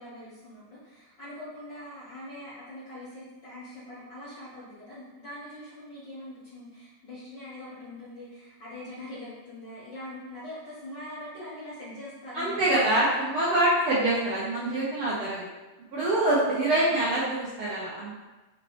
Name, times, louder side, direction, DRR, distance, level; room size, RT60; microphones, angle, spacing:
voice 1, 0.0-13.0 16.4-17.0, left 1 dB, 55° left, -11 dB, 1.3 m, -43 dB
voice 2, 12.3-15.5 15.9-18.1, right 1 dB, 80° right, -7 dB, 1.2 m, -25 dB
5.7 x 3.0 x 3.1 m, 1.2 s
omnidirectional pair, 3.4 m